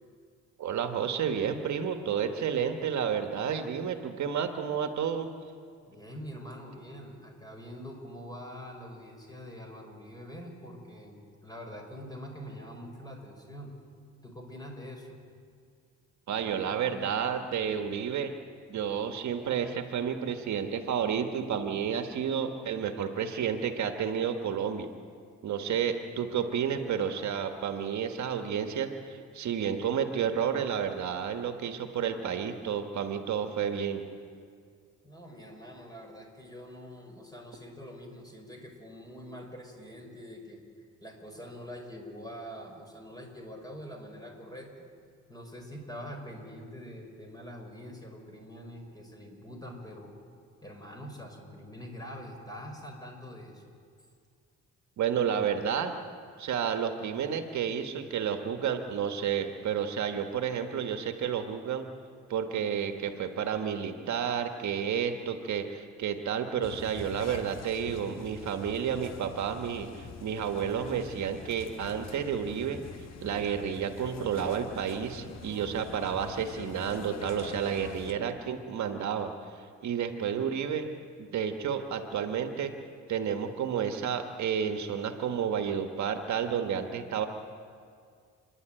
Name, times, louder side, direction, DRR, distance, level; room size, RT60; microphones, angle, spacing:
voice 1, 0.6-5.3 16.3-18.3 18.7-24.9 25.4-34.0 55.0-55.9 56.4-61.9 62.3-72.8 73.2-80.9 81.3-82.7 83.1-87.3, right 8 dB, 70° right, 6 dB, 1.6 m, -31 dB
voice 2, 5.8-13.8 14.2-15.2 35.0-44.9 45.3-50.1 50.6-53.8, equal, 15° left, 2 dB, 5.4 m, -44 dB
sound 1, 66.6-78.1, left 5 dB, 60° left, 1.6 m, -45 dB
30.0 x 11.0 x 9.1 m, 2.2 s
cardioid pair, 90°, 30 cm